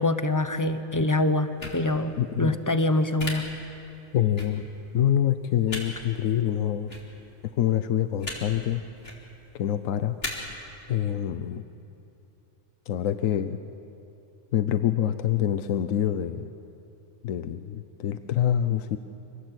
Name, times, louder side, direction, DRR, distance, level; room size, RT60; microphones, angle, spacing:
voice 1, 0.0-3.5, left 2 dB, 15° left, 10 dB, 0.8 m, -25 dB
sound 1, 1.6-1.8 3.2-3.3 4.4-4.5 5.7-5.8 6.9-7.0 8.2-8.4 8.9-9.2 10.2-10.3, left 2 dB, 50° left, 3.7 m, -34 dB
voice 2, 2.2-2.6 4.1-4.6 4.9-6.9 7.4-8.8 9.5-10.2 10.9-11.6 12.9-13.6 14.5-16.5 17.2-19.0, left 11 dB, 80° left, 10 dB, 1.1 m, -26 dB
26.0 x 19.5 x 8.1 m, 2.8 s
omnidirectional pair, 1.4 m